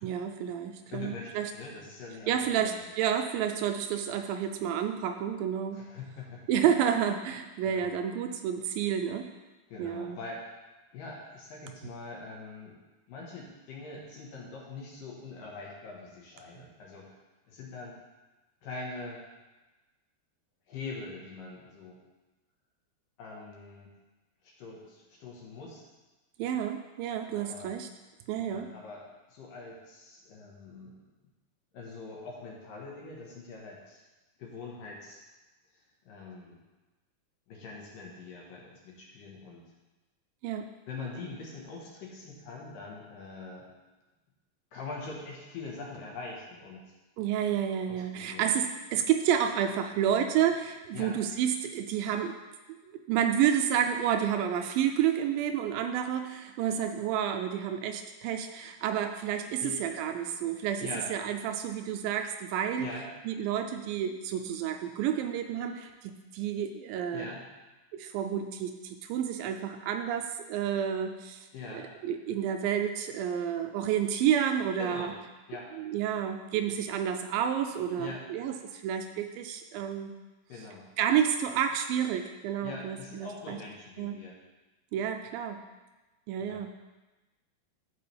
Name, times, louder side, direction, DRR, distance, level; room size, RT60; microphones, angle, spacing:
voice 1, 0.0-1.5 2.3-5.8 6.5-9.3 9.8-10.2 26.4-27.9 28.3-28.7 40.4-40.7 47.2-52.3 52.8-62.9 63.3-67.3 67.9-71.5 71.7-75.1 75.7-80.1 81.0-83.6 84.0-84.2 84.9-85.6 86.3-86.8, right 9 dB, 80° right, 6 dB, 2.2 m, -30 dB
voice 2, 0.9-2.9 5.7-6.4 7.6-7.9 9.7-10.5 10.9-12.8 13.1-17.1 17.5-18.0 18.6-19.2 20.7-22.0 23.2-23.9 24.4-25.9 27.3-27.7 28.4-31.0 31.7-34.0 34.4-35.2 36.1-36.6 37.5-39.7 40.9-43.7 44.7-46.9 47.9-48.5 50.9-51.2 59.6-59.9 60.8-61.1 62.8-63.1 67.1-67.5 71.5-71.9 74.8-75.2 75.5-75.7 78.0-78.2 80.5-80.9 82.6-84.4 86.4-86.6, left 3 dB, 70° left, -2 dB, 2.9 m, -43 dB
13.5 x 4.7 x 3.4 m, 1.2 s
omnidirectional pair, 4.3 m